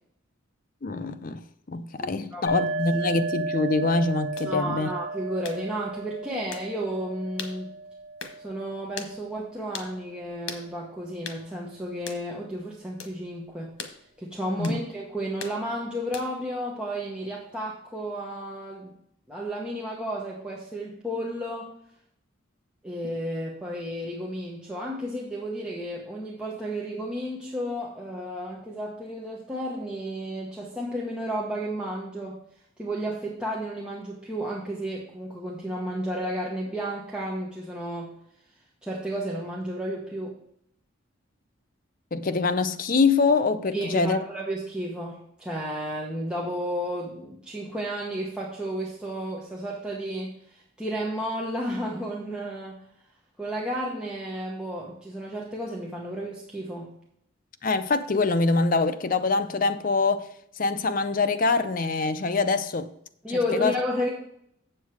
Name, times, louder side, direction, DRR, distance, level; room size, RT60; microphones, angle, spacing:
voice 1, 0.8-1.4 1.7-4.9 14.6-14.8 42.1-44.2 57.6-60.2 60.6-62.9 63.3-63.8, left 3 dB, 45° left, 0.6 m, -24 dB
voice 2, 2.0-2.5 4.4-7.7 8.4-13.7 14.2-19.0 19.3-21.7 22.8-32.4 32.8-38.1 38.8-40.4 43.7-52.8 53.4-56.9 63.2-64.1, equal, 5° right, 1.1 m, -32 dB
sound 1, 2.5-9.9, right 2 dB, 70° left, 4.3 m, -34 dB
sound 2, 4.4-4.5 5.4-5.6 6.5-6.7 7.4-7.6 8.2-8.4 9.0-9.1 9.7-9.9 10.5-10.7 11.2-11.4 12.1-12.2 13.0-13.2 13.8-14.0 14.6-14.8 15.4-15.6 16.1-16.4, left 6 dB, 90° left, 1.2 m, -38 dB
7.7 x 7.3 x 4.7 m
head